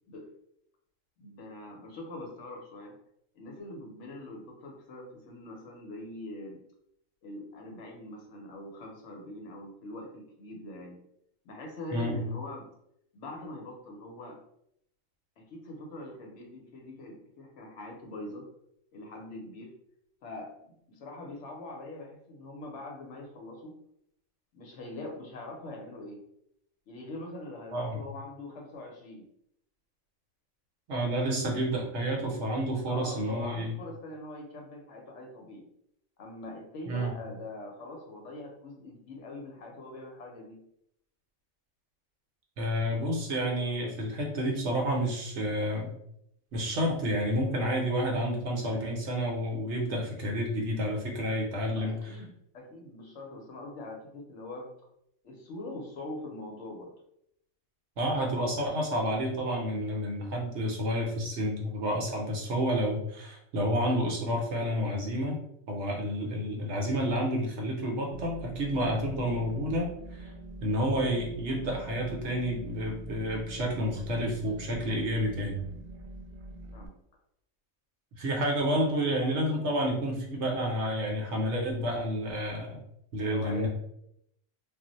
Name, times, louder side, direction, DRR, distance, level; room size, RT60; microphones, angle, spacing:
voice 1, 1.2-2.9 3.3-6.6 7.2-11.0 11.4-12.7 13.1-14.4 15.4-18.5 18.9-19.7 20.2-23.8 24.5-26.3 26.9-29.3 32.8-35.7 36.2-40.6 51.6-54.7 55.2-56.9 76.7-77.0 83.3-83.7, left 2 dB, 65° left, 0 dB, 0.9 m, -43 dB
voice 2, 30.9-33.7 36.9-37.2 42.6-45.9 46.5-52.1 58.0-65.3 65.7-70.3 70.6-75.6 78.2-82.8 83.1-83.7, equal, 65° right, 0 dB, 0.9 m, -30 dB
sound 1, 68.1-76.9, right 2 dB, 85° right, 0.4 m, -44 dB
2.4 x 2.0 x 3.8 m, 0.74 s
omnidirectional pair, 1.4 m